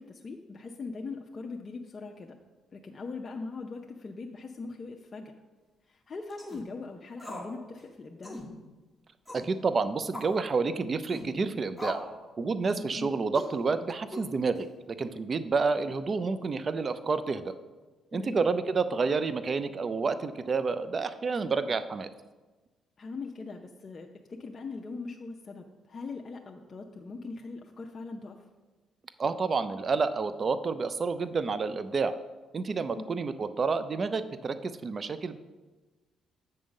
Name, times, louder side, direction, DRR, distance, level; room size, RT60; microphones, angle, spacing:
voice 1, 0.0-2.3 2.7-5.3 5.9-8.4 13.0-13.1 18.1-18.4 23.0-28.4 33.0-33.1, left 3 dB, 40° left, 1 dB, 0.6 m, -41 dB
sound 1, 6.3-6.6 7.2-7.5 7.8-7.9 8.2-8.5 9.3-9.5 10.1-10.4 11.0-11.3 11.8-12.2 12.6-12.9 13.3-13.5 14.1-14.6, left 1 dB, 5° right, 1.5 m, -40 dB
voice 2, 9.3-12.1 12.4-17.5 18.1-22.1 29.2-32.1 32.5-35.4, right 4 dB, 40° right, 12 dB, 0.4 m, -29 dB
7.8 x 3.7 x 6.4 m, 1.2 s
cardioid pair, 90°, 0 cm